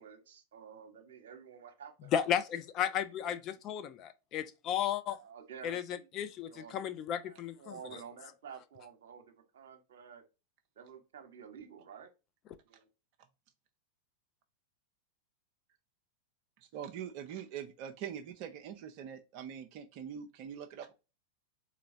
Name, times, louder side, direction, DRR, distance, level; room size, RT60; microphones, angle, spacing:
voice 1, 0.0-2.2 2.5-2.9 3.2-3.4 5.2-6.1 6.5-10.2 10.8-12.1 12.7-12.9, right 7 dB, 60° right, 0.9 m, -51 dB
voice 2, 2.1-3.4 3.6-5.2 5.6-7.8, left 9 dB, 35° left, 0.4 m, -34 dB
voice 3, 16.6-20.9, right 9 dB, 45° right, 0.4 m, -43 dB
3.8 x 3.0 x 2.5 m
figure-of-eight pair, 90°, 0 cm